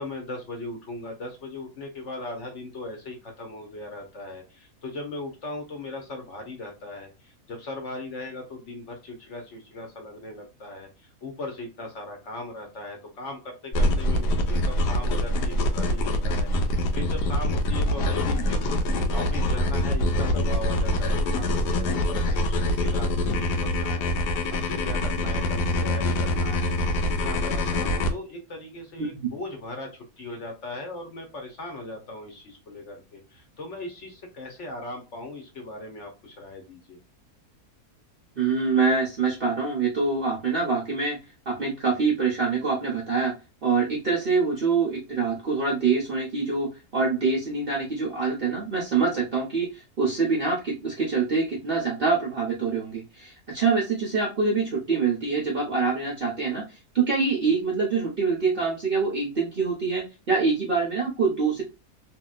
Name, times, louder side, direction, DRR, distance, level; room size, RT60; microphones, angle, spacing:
voice 1, 0.0-37.0, left 2 dB, 55° left, 3 dB, 1.0 m, -38 dB
sound 1, 13.7-28.1, left 1 dB, 90° left, 1.2 m, -24 dB
voice 2, 29.0-29.3 38.4-41.2 41.5-43.3 43.6-61.6, right 4 dB, 50° right, -1 dB, 0.7 m, -25 dB
2.9 x 2.7 x 2.3 m, 0.29 s
omnidirectional pair, 1.7 m